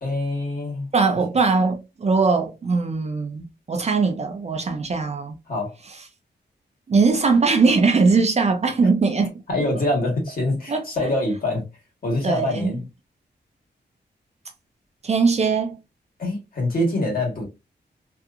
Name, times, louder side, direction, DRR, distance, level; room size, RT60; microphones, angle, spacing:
voice 1, 0.0-0.9 5.5-5.7 9.5-11.6 12.0-12.8 16.2-17.4, left 1 dB, 55° left, 1.4 m, -24 dB
voice 2, 0.9-5.4 6.9-9.3 10.7-10.8 12.2-12.8 15.0-15.8, right 4 dB, 35° right, 0.4 m, -20 dB
2.7 x 2.4 x 2.4 m
wide cardioid pair, 155°, 18 cm